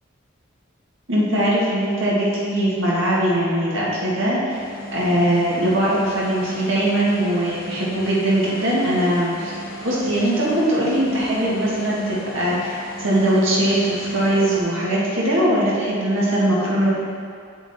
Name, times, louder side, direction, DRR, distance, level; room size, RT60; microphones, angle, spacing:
voice 1, 1.1-4.6 4.9-9.6 9.8-16.9, right 1 dB, 75° right, -7 dB, 1.9 m, -21 dB
sound 1, 4.5-14.6, equal, 50° left, 1.2 m, -36 dB
7.9 x 5.9 x 4.3 m, 2.3 s
head